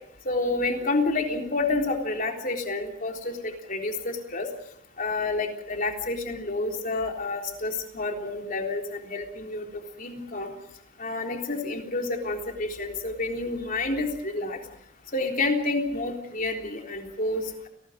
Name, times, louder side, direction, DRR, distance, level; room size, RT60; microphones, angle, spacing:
voice 1, 0.3-4.5 5.0-9.7 10.0-10.5 11.0-14.6 15.1-17.7, left 2 dB, 45° left, 3 dB, 3.7 m, -29 dB
29.5 x 19.5 x 5.2 m, 0.75 s
head